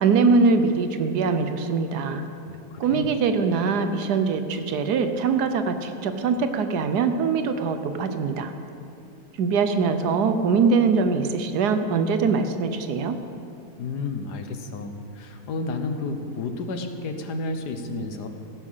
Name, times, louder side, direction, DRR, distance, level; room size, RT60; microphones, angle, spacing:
voice 1, 0.0-2.2 2.8-8.5 9.4-13.2, right 4 dB, 80° right, 8 dB, 1.3 m, -22 dB
voice 2, 2.5-3.1 13.8-18.3, left 3 dB, 85° left, 7 dB, 1.6 m, -31 dB
16.0 x 9.9 x 5.6 m, 2.6 s
omnidirectional pair, 1.7 m